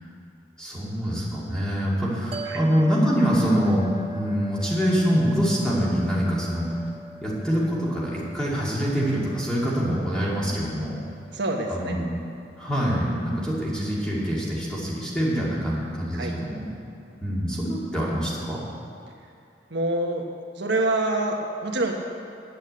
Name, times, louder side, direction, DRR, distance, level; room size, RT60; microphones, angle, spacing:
voice 1, 0.6-6.7 7.2-11.0 11.7-12.0 12.6-16.6 17.2-18.6, equal, 5° left, -6 dB, 2.5 m, -25 dB
sound 1, 2.3-14.8, equal, 35° right, 0.8 m, -42 dB
voice 2, 11.3-12.0 16.1-16.3 19.7-20.2 20.5-21.9, right 2 dB, 70° right, 1 dB, 1.3 m, -26 dB
9.4 x 8.7 x 8.0 m, 2.6 s
head